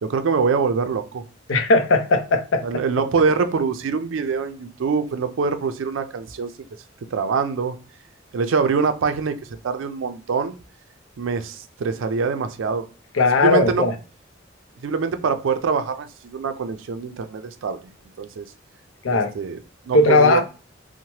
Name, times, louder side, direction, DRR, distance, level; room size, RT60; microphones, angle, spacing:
voice 1, 0.0-1.2 2.6-6.5 7.1-7.8 8.3-9.4 9.6-10.6 11.2-12.9 13.4-13.9 14.8-16.1 16.3-17.9 18.2-18.5 19.1-20.4, right 5 dB, 85° right, 0.4 m, -24 dB
voice 2, 1.5-2.6 13.1-13.9 19.0-19.3 19.9-20.4, left 3 dB, 85° left, 0.5 m, -17 dB
2.8 x 2.1 x 2.9 m
head